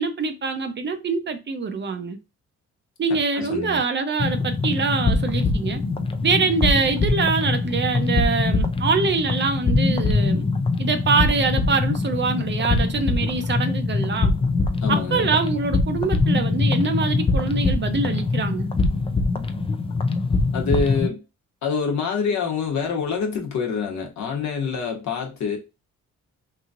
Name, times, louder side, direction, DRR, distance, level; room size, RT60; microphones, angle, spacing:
voice 1, 0.0-2.2 3.0-5.8 6.2-10.5 10.8-14.3 14.9-18.7, right 4 dB, 35° right, 0.6 m, -24 dB
voice 2, 3.1-3.8 14.8-15.3 20.5-21.2 21.6-25.6, left 5 dB, 65° left, 1.1 m, -26 dB
sound 1, 4.2-21.1, left 3 dB, 20° left, 0.4 m, -23 dB
3.0 x 2.7 x 2.4 m
cardioid pair, 90°, 30 cm